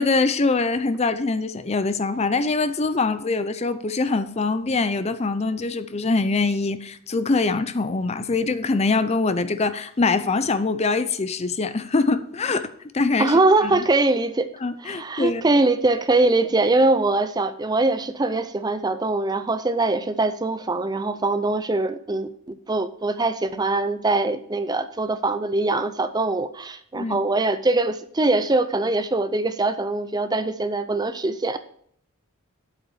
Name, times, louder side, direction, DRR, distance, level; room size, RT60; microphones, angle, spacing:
voice 1, 0.0-13.8 14.6-15.4 26.9-27.2, left 3 dB, 30° left, 0.5 m, -23 dB
voice 2, 13.2-14.5 14.8-31.6, right 2 dB, 20° right, 0.5 m, -22 dB
8.3 x 8.2 x 4.8 m
head